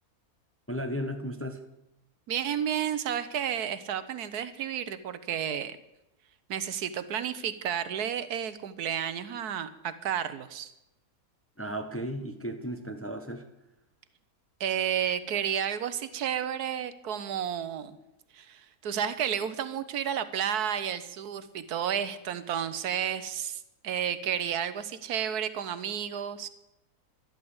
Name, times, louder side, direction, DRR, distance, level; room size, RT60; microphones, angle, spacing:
voice 1, 0.7-1.6 11.6-13.4, equal, 10° left, 6 dB, 0.9 m, -35 dB
voice 2, 2.3-5.8 6.5-10.7 14.6-18.0 18.3-26.5, right 9 dB, 75° right, 13 dB, 1.4 m, -31 dB
12.0 x 12.0 x 7.9 m, 0.90 s
omnidirectional pair, 1.7 m